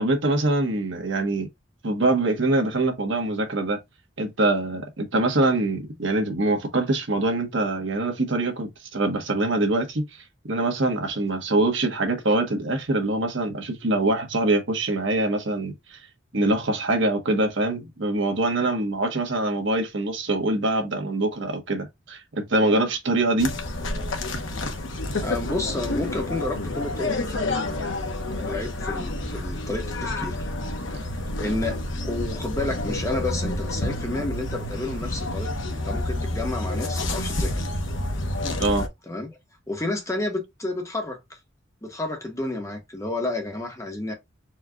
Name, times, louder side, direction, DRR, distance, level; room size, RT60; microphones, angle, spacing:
voice 1, 0.0-1.5 1.8-3.8 4.2-16.0 16.3-23.5 38.6-38.9, right 2 dB, 70° right, 1.2 m, -24 dB
sound 1, 23.4-38.9, left 1 dB, 75° left, 1.0 m, -29 dB
voice 2, 25.2-27.4 27.7-30.4 30.9-35.5 35.8-37.5 39.1-39.3 39.7-41.4 41.8-44.1, left 2 dB, 15° left, 0.9 m, -31 dB
4.4 x 2.4 x 3.6 m
head